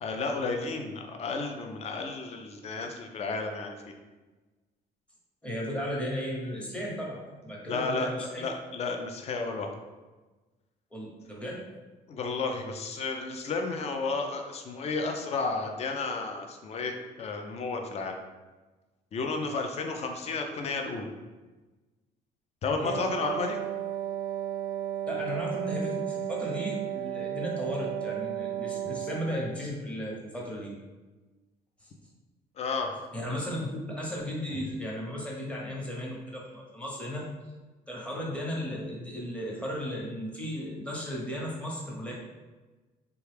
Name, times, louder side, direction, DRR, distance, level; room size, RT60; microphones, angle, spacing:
voice 1, 0.0-4.0 7.7-9.7 12.1-18.2 19.1-21.1 22.6-23.6 32.6-32.9 34.5-34.6, left 4 dB, 40° left, 4 dB, 0.4 m, -32 dB
voice 2, 5.4-8.4 10.9-11.7 22.8-23.0 25.1-30.7 31.8-31.9 33.1-37.3 37.9-42.1, equal, 5° left, -4 dB, 0.9 m, -35 dB
Wind instrument woodwind instrument, 22.8-29.6, right 11 dB, 50° right, 0.4 m, -34 dB
3.3 x 2.2 x 3.3 m, 1.2 s
cardioid pair, 110°, 17 cm